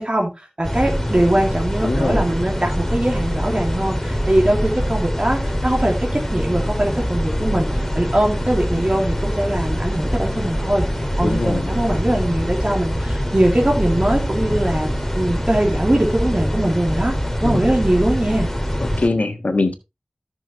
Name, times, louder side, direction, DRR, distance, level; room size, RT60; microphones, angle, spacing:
voice 1, 0.0-10.9 11.2-14.9 15.1-18.5, right 1 dB, 40° right, 1 dB, 2.7 m, -21 dB
sound 1, 0.6-19.1, equal, 15° left, 2.0 m, -23 dB
voice 2, 1.8-2.2 11.2-11.8 17.4-17.7 18.8-19.7, left 2 dB, 80° left, 7 dB, 1.5 m, -22 dB
13.5 x 6.3 x 3.1 m, 0.24 s
wide cardioid pair, 45°, 2 cm